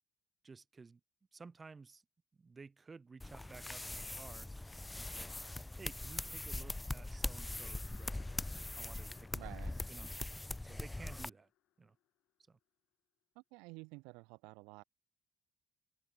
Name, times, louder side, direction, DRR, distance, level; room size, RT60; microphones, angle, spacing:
voice 1, 0.4-1.0 1.3-2.0 2.4-4.5 4.9-5.3 5.7-8.4 8.7-9.5 9.9-10.1 10.6-11.5 11.8-12.0 12.5-12.6, right 4 dB, 30° right, 2.7 m, -55 dB
sound 1, 3.2-11.3, left 2 dB, 15° left, 1.3 m, -42 dB
sound 2, 7.0-12.4, left 15 dB, 75° left, 6.2 m, -67 dB
voice 2, 9.3-9.7 13.3-14.8, right 28 dB, 90° right, 1.4 m, -51 dB
open air
supercardioid pair, 70°, 0 cm